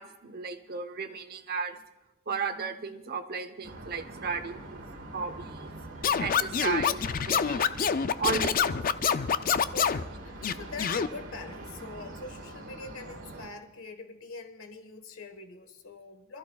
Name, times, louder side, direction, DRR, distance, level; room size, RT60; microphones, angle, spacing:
voice 1, 0.0-1.8 2.3-4.8 5.1-5.7 6.2-7.6 8.2-8.8, right 5 dB, 50° right, 0.9 m, -34 dB
sound 1, 3.6-13.5, right 1 dB, 65° right, 1.6 m, -44 dB
Scratching (performance technique), 6.0-10.0 10.4-11.1, left 7 dB, 45° left, 0.4 m, -26 dB
voice 2, 9.7-16.4, left 3 dB, 75° left, 1.4 m, -44 dB
26.0 x 14.0 x 2.4 m
head